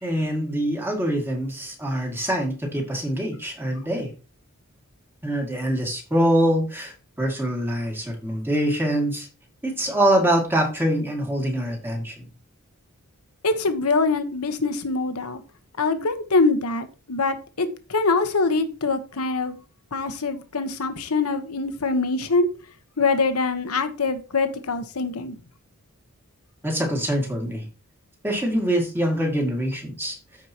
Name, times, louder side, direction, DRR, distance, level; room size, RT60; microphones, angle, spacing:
voice 1, 0.0-4.1 5.2-9.3 9.6-12.3 26.6-27.6 28.2-30.2, right 1 dB, 10° right, 2.1 m, -24 dB
voice 2, 13.4-15.4 15.8-19.6 19.9-22.5 23.0-25.4, left 3 dB, 80° left, 1.1 m, -24 dB
14.5 x 4.9 x 2.9 m
head